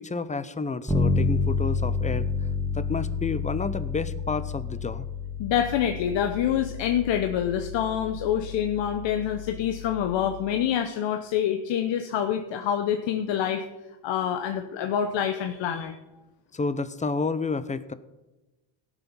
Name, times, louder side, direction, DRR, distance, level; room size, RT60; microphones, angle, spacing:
voice 1, 0.0-2.3 2.7-5.1 16.5-17.9, left 4 dB, 15° left, 14 dB, 0.6 m, -30 dB
Bass guitar, 0.9-10.6, left 4 dB, ahead, 1.9 m, -30 dB
voice 2, 5.4-13.6 14.0-16.0, left 9 dB, 90° left, 6 dB, 0.9 m, -26 dB
17.0 x 6.2 x 5.4 m, 1.1 s
cardioid pair, 115°, 43 cm